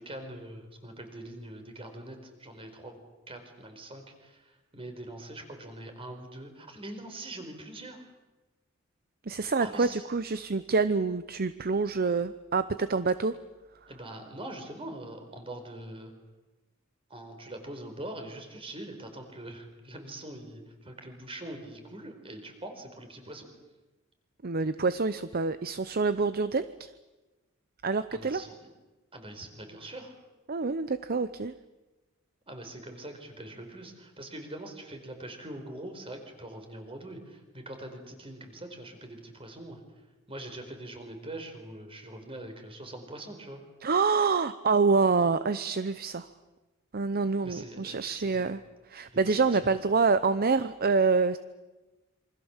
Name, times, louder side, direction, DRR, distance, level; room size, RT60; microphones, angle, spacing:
voice 1, 0.0-3.0 3.3-8.0 9.6-10.0 13.9-16.1 17.1-23.5 28.1-28.7 29.1-30.1 32.5-39.8 40.3-43.6 47.4-48.4 49.1-49.7, right 1 dB, 25° right, 5 dB, 4.6 m, -43 dB
voice 2, 9.3-13.4 24.4-26.9 27.8-28.4 30.5-31.5 43.8-46.3 46.9-48.6 48.9-51.4, right 4 dB, 45° right, 13 dB, 0.8 m, -26 dB
27.5 x 25.0 x 7.3 m, 1.2 s
head